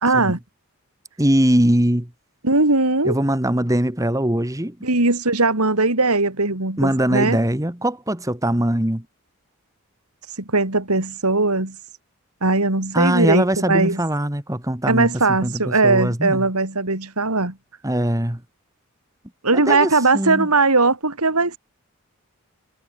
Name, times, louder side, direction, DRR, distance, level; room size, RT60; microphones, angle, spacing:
voice 1, 0.0-0.4 2.4-3.2 4.8-7.4 10.5-11.8 12.4-14.0 14.9-17.6 19.4-21.6, right 3 dB, 90° right, 3.8 m, -19 dB
voice 2, 1.2-2.1 3.1-4.8 6.8-9.0 12.9-16.5 17.8-18.4 19.5-20.5, right 1 dB, 15° right, 1.6 m, -21 dB
head